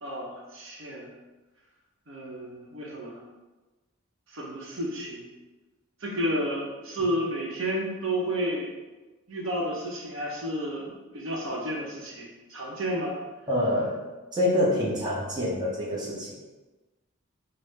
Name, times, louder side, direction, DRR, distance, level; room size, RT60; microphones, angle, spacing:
voice 1, 0.0-1.1 2.1-3.2 4.3-5.2 6.0-8.7 9.3-13.2, equal, 60° right, -3 dB, 0.9 m, -31 dB
voice 2, 13.5-14.0 14.3-16.4, left 1 dB, 20° right, -6 dB, 0.7 m, -26 dB
5.4 x 2.1 x 3.3 m, 1.2 s
head